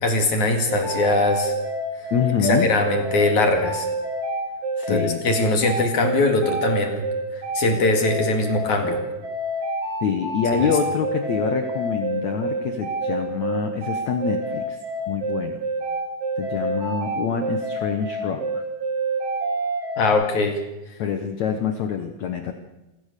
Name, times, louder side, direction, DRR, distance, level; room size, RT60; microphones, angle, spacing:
voice 1, 0.0-1.5 2.4-3.9 4.9-7.0 7.3-9.0 10.6-10.7 20.0-20.6, left 2 dB, 50° left, 5 dB, 3.0 m, -21 dB
sound 1, 0.7-20.1, right 3 dB, 80° right, 8.1 m, -27 dB
voice 2, 2.1-2.7 4.8-5.2 10.0-14.8 15.1-15.6 16.4-18.6 21.0-22.5, left 7 dB, 90° left, 7 dB, 1.6 m, -26 dB
27.5 x 16.0 x 6.8 m, 1.0 s
omnidirectional pair, 5.2 m